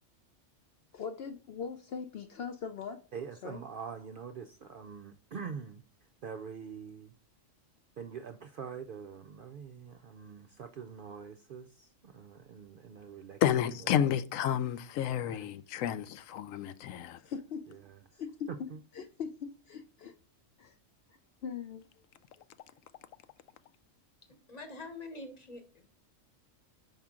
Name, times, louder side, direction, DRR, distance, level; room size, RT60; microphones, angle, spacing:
voice 1, 0.9-3.0 3.4-3.6 17.2-17.7 18.1-18.7 18.9-20.1 20.6-20.8 21.1-21.8 22.4-22.5, left 6 dB, 60° left, 0.7 m, -41 dB
voice 2, 3.1-5.8 6.2-7.1 8.0-14.1 15.3-15.5 17.7-18.0 18.5-18.8, right 6 dB, 65° right, 0.5 m, -44 dB
voice 3, 13.4-17.2, left 10 dB, 85° left, 1.0 m, -30 dB
voice 4, 24.3-25.9, left 2 dB, 35° left, 1.1 m, -46 dB
5.8 x 5.5 x 3.6 m
omnidirectional pair, 1.3 m